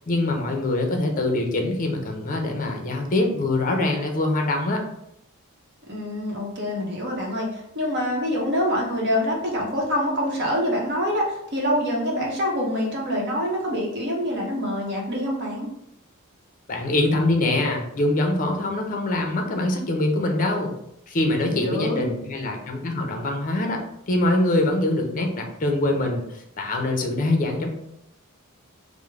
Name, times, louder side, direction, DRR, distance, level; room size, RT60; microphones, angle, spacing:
voice 1, 0.1-4.8 16.7-20.7 21.1-23.8 24.1-27.7, left 2 dB, 40° left, 3 dB, 0.5 m, -24 dB
voice 2, 5.9-15.7 21.4-22.0, equal, 50° right, -2 dB, 0.8 m, -25 dB
3.5 x 2.0 x 3.2 m, 0.78 s
head